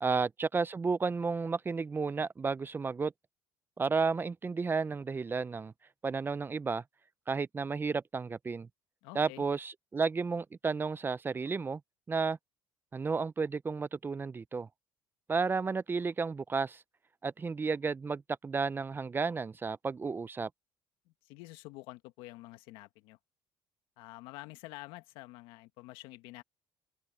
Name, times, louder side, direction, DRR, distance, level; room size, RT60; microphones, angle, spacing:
voice 1, 0.0-3.1 3.8-5.7 6.0-6.8 7.3-8.7 9.1-11.8 12.1-12.4 12.9-14.7 15.3-16.8 17.2-20.5, right 4 dB, 25° right, 0.6 m, -32 dB
voice 2, 9.0-9.4 21.0-23.2 24.0-26.4, left 19 dB, 80° left, 1.5 m, -48 dB
open air
supercardioid pair, 85°, 9 cm